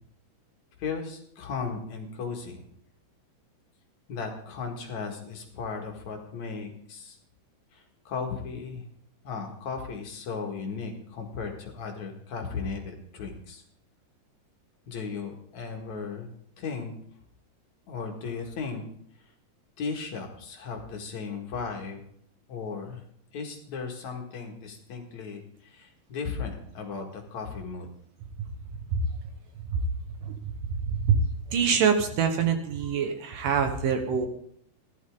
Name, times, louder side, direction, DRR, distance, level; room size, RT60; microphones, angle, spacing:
voice 1, 0.8-2.6 4.1-7.2 7.7-8.8 9.2-13.6 14.9-16.9 17.9-18.8 19.2-19.3 19.8-22.1 22.5-23.0 23.3-27.9, left 5 dB, 55° left, 2 dB, 2.6 m, -36 dB
voice 2, 30.7-31.2 31.5-34.3, right 7 dB, 65° right, 6 dB, 2.5 m, -25 dB
15.0 x 12.0 x 3.7 m, 0.67 s
omnidirectional pair, 4.7 m